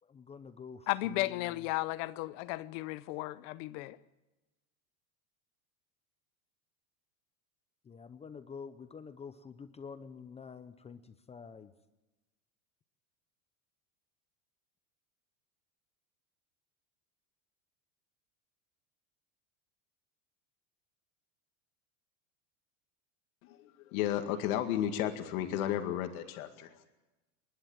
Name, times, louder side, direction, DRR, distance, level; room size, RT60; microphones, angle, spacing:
voice 1, 0.1-1.7 7.8-11.7, left 6 dB, 15° left, 0.6 m, -48 dB
voice 2, 0.9-4.0, left 18 dB, 60° left, 0.8 m, -34 dB
voice 3, 23.4-26.7, left 11 dB, 75° left, 2.2 m, -33 dB
28.0 x 11.5 x 9.0 m
supercardioid pair, 145°, 42 cm